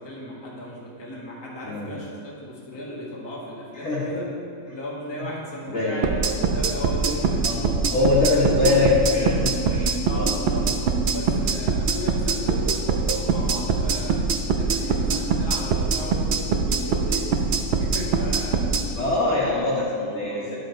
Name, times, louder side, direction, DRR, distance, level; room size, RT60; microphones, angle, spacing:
voice 1, 0.0-4.3 4.7-8.9 10.1-14.1 14.5-18.7 19.2-20.5, equal, 20° left, -5 dB, 1.3 m, -36 dB
voice 2, 1.6-1.9 3.8-4.1 5.2-5.3 5.7-6.0 7.4-7.6 7.9-10.3 18.9-20.6, left 3 dB, 55° left, -5 dB, 1.6 m, -23 dB
sound 1, 6.0-18.8, right 5 dB, 60° right, 0.8 m, -23 dB
9.8 x 5.2 x 4.4 m, 2.5 s
omnidirectional pair, 1.4 m